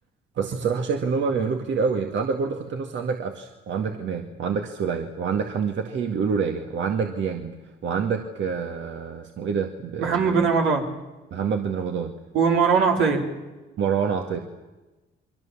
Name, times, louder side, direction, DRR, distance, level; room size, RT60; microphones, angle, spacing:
voice 1, 0.4-10.5 11.3-12.1 13.8-14.4, right 6 dB, 70° right, 4 dB, 2.0 m, -27 dB
voice 2, 10.0-10.9 12.3-13.3, right 5 dB, 90° right, 1 dB, 4.4 m, -20 dB
29.0 x 23.5 x 7.3 m, 1.1 s
cardioid pair, 90°, 20 cm